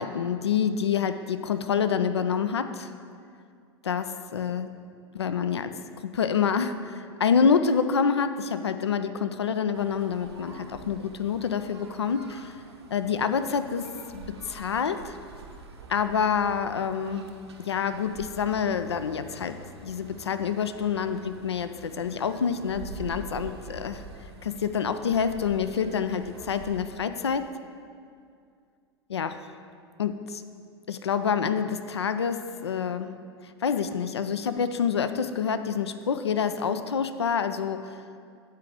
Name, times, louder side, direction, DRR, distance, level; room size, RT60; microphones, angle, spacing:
voice 1, 0.0-2.9 3.8-4.7 5.1-12.6 12.9-13.9 14.1-15.2 15.9-17.2 17.6-19.6 19.8-24.0 24.4-27.5 29.1-29.5 30.0-30.4 30.9-33.1 33.6-38.0, left 6 dB, 75° left, 10 dB, 0.4 m, -27 dB
sound 1, 9.7-26.8, right 4 dB, 75° right, 0.8 m, -46 dB
8.2 x 4.9 x 6.4 m, 2.3 s
figure-of-eight pair, 85°, 14 cm